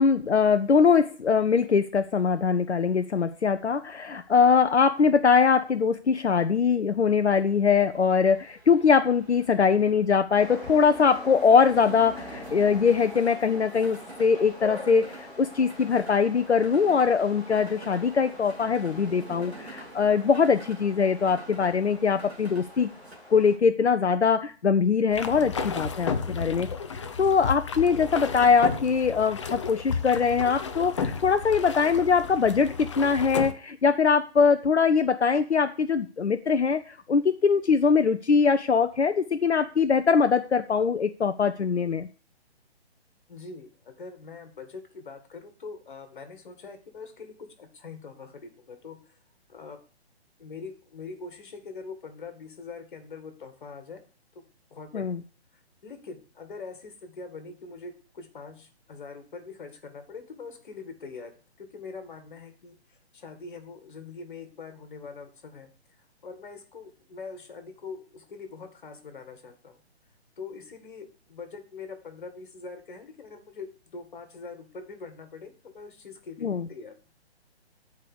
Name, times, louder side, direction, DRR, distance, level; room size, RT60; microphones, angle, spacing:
voice 1, 0.0-22.9 23.3-42.1 54.9-55.2 76.4-76.7, left 5 dB, 80° left, 9 dB, 0.6 m, -22 dB
sound 1, 3.8-23.2, right 3 dB, 70° right, 2.3 m, -49 dB
sound 2, 10.4-23.6, left 2 dB, 10° left, 3.1 m, -43 dB
sound 3, 25.1-33.5, left 5 dB, 30° left, 0.6 m, -33 dB
voice 2, 43.3-49.2 49.5-49.8 50.4-54.0 54.3-54.4 54.7-55.1 55.8-65.7 66.0-69.8 70.4-77.0, left 4 dB, 50° left, 7 dB, 1.8 m, -43 dB
8.4 x 4.7 x 6.4 m, 0.38 s
figure-of-eight pair, 135°, 33 cm